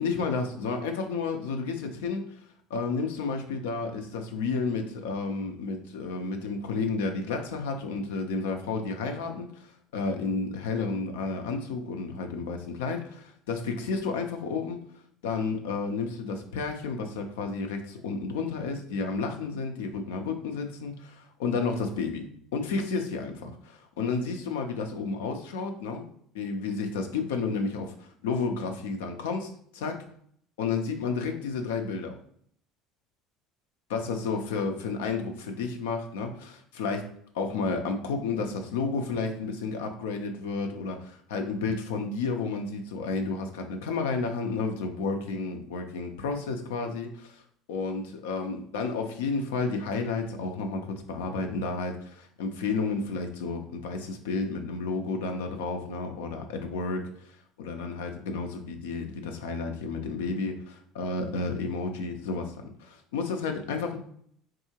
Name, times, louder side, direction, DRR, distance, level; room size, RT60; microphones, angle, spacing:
voice 1, 0.0-2.2 2.7-14.8 15.2-22.2 22.5-26.1 26.3-30.0 30.6-32.2 33.9-37.1 37.3-47.4 47.7-57.3 57.6-64.0, left 4 dB, 85° left, 5 dB, 0.5 m, -31 dB
3.6 x 2.7 x 2.8 m, 0.65 s
hypercardioid pair, 80°, 0 cm